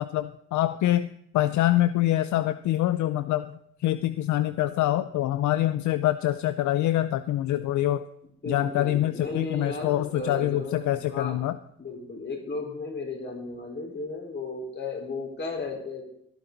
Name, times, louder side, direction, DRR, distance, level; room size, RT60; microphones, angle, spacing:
voice 1, 0.0-8.0 8.5-11.6, left 14 dB, 75° left, 12 dB, 0.5 m, -25 dB
voice 2, 8.4-11.4 11.8-16.0, left 3 dB, 40° left, 1 dB, 4.3 m, -35 dB
17.5 x 9.9 x 4.0 m, 0.75 s
cardioid pair, 90°, 30 cm